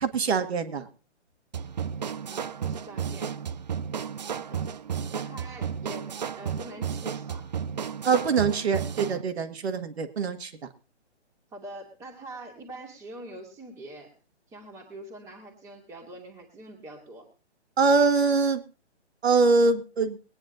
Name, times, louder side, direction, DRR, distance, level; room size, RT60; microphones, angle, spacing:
voice 1, 0.0-0.9 8.0-10.5 17.8-18.6 19.2-20.2, right 4 dB, 60° right, 8 dB, 1.8 m, -23 dB
sound 1, 1.5-9.2, right 7 dB, 40° right, 0.5 m, -33 dB
voice 2, 2.3-3.3 4.3-4.7 5.1-6.1 6.4-7.5 11.5-14.1 14.5-17.3, right 1 dB, 10° right, 1 dB, 2.2 m, -44 dB
22.5 x 9.8 x 2.6 m, 0.33 s
hypercardioid pair, 160°, 35 cm